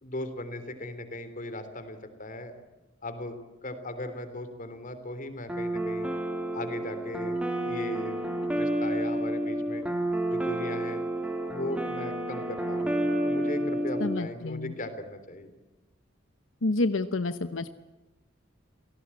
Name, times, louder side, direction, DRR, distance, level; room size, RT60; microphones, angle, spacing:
voice 1, 0.0-2.5 3.0-3.4 3.6-6.1 6.5-7.4 7.6-8.3 8.5-9.8 10.3-11.0 11.5-15.5, left 1 dB, 45° left, 9 dB, 3.5 m, -38 dB
sound 1, 5.5-14.2, right 1 dB, 5° right, 3.2 m, -30 dB
voice 2, 14.0-14.7 16.6-17.7, left 2 dB, 90° left, 10 dB, 1.0 m, -29 dB
29.0 x 17.5 x 8.7 m, 1.1 s
head